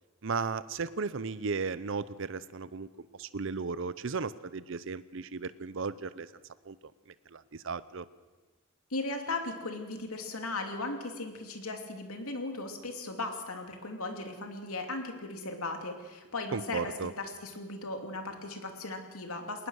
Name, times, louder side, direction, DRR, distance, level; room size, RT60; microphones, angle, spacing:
voice 1, 0.2-6.3 6.6-8.0 16.5-17.1, right 4 dB, 60° right, 15 dB, 0.6 m, -35 dB
voice 2, 8.9-19.7, left 2 dB, 80° left, 4 dB, 2.8 m, -37 dB
21.0 x 19.5 x 6.5 m, 1.2 s
head